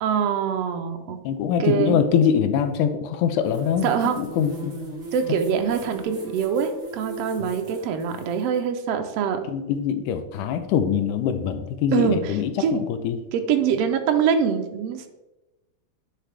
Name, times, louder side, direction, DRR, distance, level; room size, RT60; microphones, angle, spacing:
voice 1, 0.0-1.2 1.6-2.0 3.8-4.2 5.1-9.4 11.9-12.8 13.3-15.1, right 7 dB, 85° right, 6 dB, 1.4 m, -24 dB
voice 2, 1.2-3.9 4.2-4.8 7.4-7.5 9.5-13.2, left 8 dB, 80° left, 9 dB, 2.1 m, -23 dB
sound 1, 3.4-8.6, equal, 65° right, 0.6 m, -39 dB
10.0 x 5.7 x 3.4 m, 1.0 s
omnidirectional pair, 3.6 m